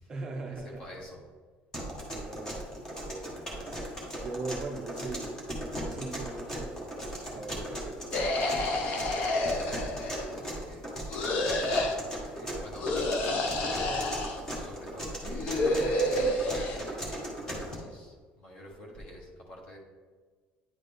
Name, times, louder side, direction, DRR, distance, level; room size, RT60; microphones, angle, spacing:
voice 1, 0.1-0.9 2.0-2.7 3.0-3.8 4.2-8.1 8.5-9.7 10.2-10.5 12.4-13.1, right 3 dB, 20° right, 2 dB, 0.5 m, -41 dB
voice 2, 0.6-1.2 7.2-7.4 9.8-11.8 12.2-12.9 14.5-15.6 16.4-19.8, left 1 dB, 30° left, -1 dB, 1.3 m, -48 dB
sound 1, 1.7-17.7, equal, 15° left, 1.2 m, -37 dB
sound 2, 8.1-10.4 11.1-12.0 12.8-14.4 15.2-16.8, left 1 dB, 50° left, 0.8 m, -29 dB
9.6 x 4.1 x 3.4 m, 1.4 s
cardioid pair, 180°, 4 cm